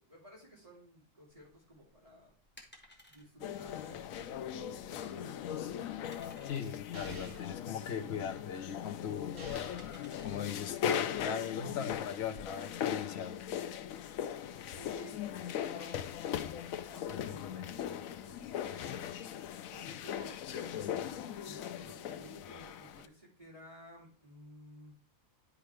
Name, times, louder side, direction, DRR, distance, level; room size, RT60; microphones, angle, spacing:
voice 1, 0.0-2.3 3.1-6.0 14.6-16.1 16.4-24.9, equal, 25° right, 2.4 m, -55 dB
sound 1, 1.3-11.9, left 1 dB, 10° left, 1.2 m, -61 dB
sound 2, 3.4-23.1, left 9 dB, 80° left, 1.0 m, -39 dB
voice 2, 6.4-9.4 9.7-9.8 10.2-13.4, left 7 dB, 55° left, 1.0 m, -39 dB
sound 3, 6.9-7.5 9.4-10.0, right 2 dB, 65° right, 2.9 m, -48 dB
10.0 x 4.9 x 3.3 m
omnidirectional pair, 1.4 m